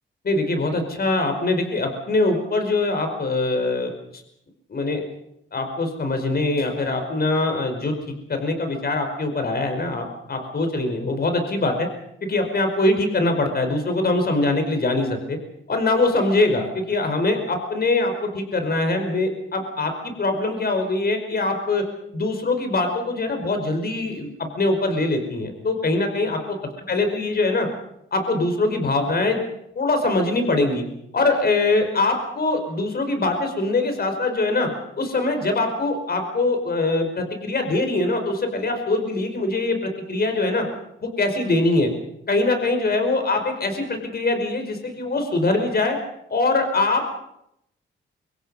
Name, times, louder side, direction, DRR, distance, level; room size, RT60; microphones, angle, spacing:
voice 1, 0.2-4.2 4.7-5.0 5.5-7.9 8.3-11.9 12.2-15.4 15.7-21.8 22.1-26.6 26.9-27.7 28.1-29.4 29.7-30.8 31.1-34.7 35.0-40.7 41.0-41.9 42.3-46.0 46.3-47.1, left 2 dB, 50° left, 6 dB, 5.1 m, -23 dB
25.5 x 23.5 x 5.6 m, 0.78 s
cardioid pair, 70°, 20 cm